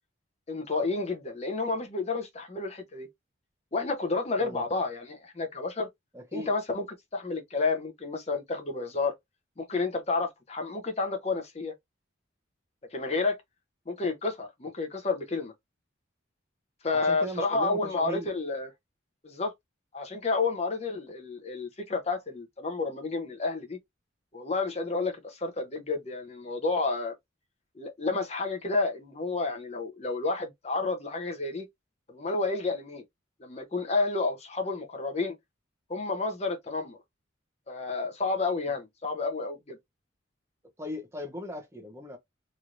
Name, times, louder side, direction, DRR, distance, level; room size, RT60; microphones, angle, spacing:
voice 1, 0.5-3.1 3.7-5.9 6.3-6.8 7.1-9.1 9.6-11.7 12.9-13.4 13.9-15.5 16.8-18.7 19.2-19.5 19.9-23.8 24.3-27.1 27.8-31.7 32.1-33.0 33.4-35.3 35.9-37.0 37.7-39.8, left 3 dB, 30° left, 0.7 m, -30 dB
voice 2, 6.1-6.5 16.9-18.3 40.8-42.2, left 1 dB, 15° right, 0.6 m, -38 dB
3.1 x 2.7 x 2.5 m
head